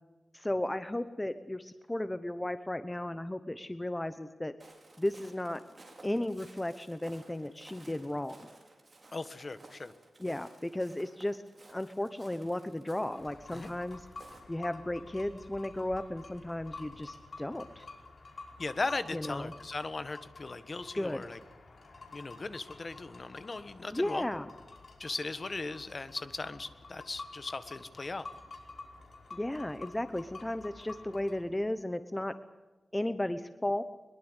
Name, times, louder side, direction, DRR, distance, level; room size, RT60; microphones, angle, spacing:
voice 1, 0.3-4.5 5.0-5.6 6.0-8.5 10.2-11.4 11.7-14.1 14.5-17.9 19.1-19.5 20.9-21.2 23.9-24.5 29.3-32.3 32.9-33.8, left 1 dB, 15° left, 11 dB, 0.9 m, -34 dB
Walk footsteps, 4.6-14.4, right 2 dB, 30° right, 5.5 m, -56 dB
voice 2, 9.1-9.9 13.5-13.7 18.6-21.4 22.1-24.3 25.0-28.3, left 3 dB, 35° left, 12 dB, 1.5 m, -38 dB
sound 1, 13.1-31.4, left 3 dB, 55° left, 5.1 m, -50 dB
23.0 x 22.0 x 8.2 m, 1.2 s
wide cardioid pair, 125°, 0 cm